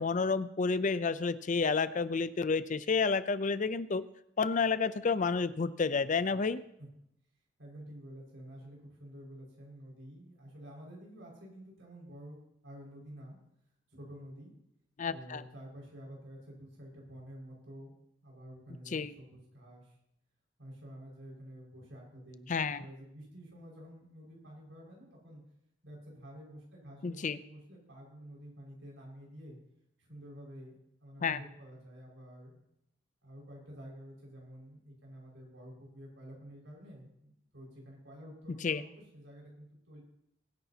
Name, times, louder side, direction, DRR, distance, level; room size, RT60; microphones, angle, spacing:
voice 1, 0.0-4.0 4.4-6.6 15.0-15.4 18.9-19.1 22.5-22.8 27.0-27.4 31.2-31.4 38.6-38.8, left 4 dB, 40° left, 14 dB, 0.5 m, -30 dB
voice 2, 7.6-13.4 13.9-14.5 15.1-17.9 18.2-20.0 20.6-25.4 25.8-29.6 30.0-32.6 33.2-40.0, equal, 80° right, -2 dB, 5.6 m, -50 dB
22.0 x 10.0 x 2.9 m, 0.78 s
head